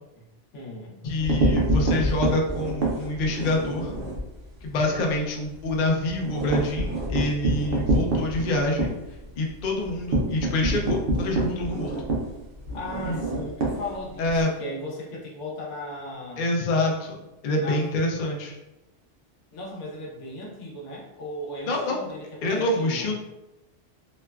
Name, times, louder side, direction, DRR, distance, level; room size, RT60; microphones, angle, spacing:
voice 1, 0.5-1.0 12.7-16.5 17.5-17.9 19.5-23.1, left 1 dB, 85° left, -2 dB, 1.0 m, -36 dB
voice 2, 1.0-3.9 4.6-8.9 9.4-12.0 13.1-13.2 14.2-14.5 16.4-18.6 21.7-22.0 22.4-23.1, left 1 dB, 60° left, 0 dB, 0.5 m, -26 dB
sound 1, 1.1-4.3 4.6-4.8 5.1-5.2 5.6-14.4, right 1 dB, 60° right, 0.8 m, -26 dB
2.9 x 2.2 x 2.3 m, 0.96 s
omnidirectional pair, 1.2 m